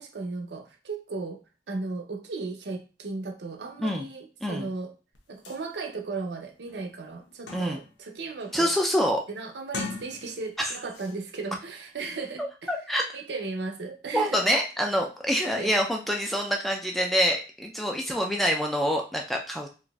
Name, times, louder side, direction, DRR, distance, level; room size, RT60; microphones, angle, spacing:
voice 1, 0.0-1.4 1.7-4.9 5.3-8.7 9.3-12.7 13.1-14.4 15.5-15.7, right 3 dB, 75° right, 3 dB, 0.6 m, -36 dB
sound 1, 5.1-5.2 5.5-5.6 6.2-6.3 6.7-8.0 8.4-8.8 9.6-10.6 10.9-11.2, left 4 dB, 90° left, 0.7 m, -39 dB
voice 2, 8.5-9.2 10.6-10.7 12.4-13.0 14.1-19.7, equal, ahead, 1 dB, 0.3 m, -26 dB
3.9 x 2.5 x 2.3 m, 0.34 s
head